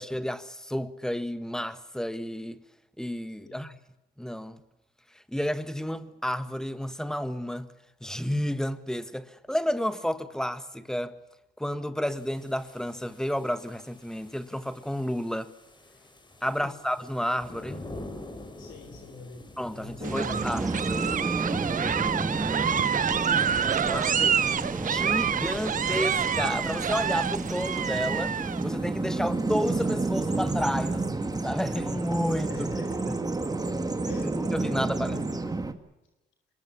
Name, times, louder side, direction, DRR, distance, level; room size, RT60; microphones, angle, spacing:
voice 1, 0.0-2.6 3.0-3.7 4.2-4.6 5.1-7.7 8.0-11.1 11.6-15.5 16.4-17.9 19.6-21.1 23.9-24.3 24.8-28.4 28.6-32.7 33.1-33.2 34.2-35.6, equal, 5° left, 1.5 m, -31 dB
voice 2, 3.5-3.8 16.4-16.8 18.6-21.0 22.4-24.8 32.5-33.4 34.0-34.4 34.7-35.5, left 4 dB, 85° left, 3.7 m, -46 dB
sound 1, 12.1-31.0, left 2 dB, 25° left, 4.1 m, -47 dB
Bird vocalization bird call bird song, 20.0-35.7, right 3 dB, 20° right, 2.1 m, -30 dB
sound 2, 20.0-28.6, right 8 dB, 45° right, 0.7 m, -28 dB
25.0 x 22.0 x 7.0 m
cardioid pair, 90°, 20 cm